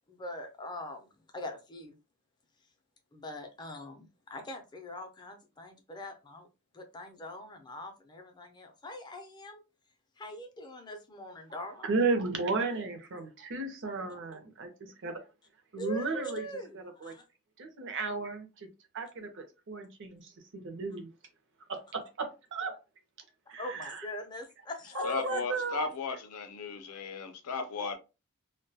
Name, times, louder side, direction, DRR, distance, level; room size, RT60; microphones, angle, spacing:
voice 1, 0.1-1.9 3.1-6.5 6.7-9.6 10.2-11.9 15.8-17.2 23.6-25.4, left 1 dB, 20° left, 0.5 m, -42 dB
voice 2, 11.5-15.2 15.7-16.5 16.7-17.1 17.6-18.7 18.9-21.1 21.7-22.8 23.5-24.1 24.9-25.9, right 3 dB, 55° right, 0.6 m, -34 dB
voice 3, 25.0-28.0, left 4 dB, 85° left, 0.5 m, -36 dB
2.2 x 2.2 x 2.6 m
head